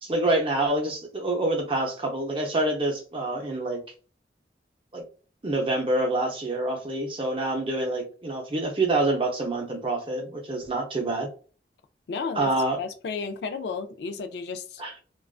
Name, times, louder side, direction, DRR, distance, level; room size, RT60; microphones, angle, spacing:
voice 1, 0.0-3.8 4.9-5.0 5.4-11.3 12.3-12.8 14.8-14.9, right 2 dB, 30° right, 0.6 m, -26 dB
voice 2, 12.1-12.5 12.8-15.0, left 5 dB, 70° left, 0.3 m, -33 dB
2.4 x 2.3 x 2.3 m
head